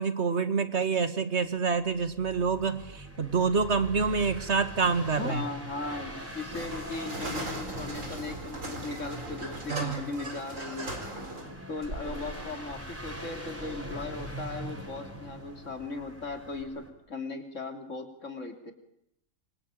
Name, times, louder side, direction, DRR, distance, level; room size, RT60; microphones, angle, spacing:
voice 1, 0.0-5.4 9.7-10.0, right 5 dB, 55° right, 11 dB, 2.1 m, -27 dB
sound 1, 1.8-16.9, equal, 10° right, 4.8 m, -43 dB
voice 2, 5.1-11.0 11.7-18.7, left 3 dB, 65° left, 6 dB, 3.6 m, -38 dB
sound 2, 6.2-16.6, right 1 dB, 75° right, 4.7 m, -40 dB
26.0 x 24.5 x 9.0 m, 0.77 s
omnidirectional pair, 1.4 m